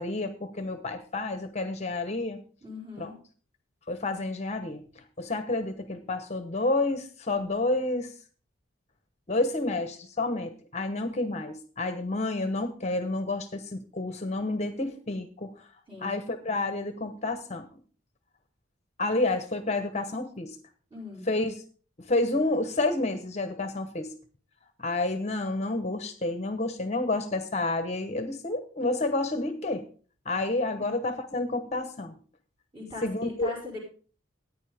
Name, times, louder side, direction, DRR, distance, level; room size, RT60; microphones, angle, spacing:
voice 1, 0.0-2.4 3.0-3.1 3.9-4.8 5.2-8.1 9.3-15.7 16.0-17.7 19.0-20.6 21.3-21.6 22.0-24.1 24.8-29.8 30.2-32.1 33.0-33.5, left 2 dB, 35° left, 9 dB, 1.0 m, -29 dB
voice 2, 2.6-3.2 15.9-16.2 20.9-21.3 32.7-33.8, left 2 dB, 25° right, -2 dB, 4.9 m, -40 dB
14.5 x 9.6 x 3.5 m, 0.41 s
head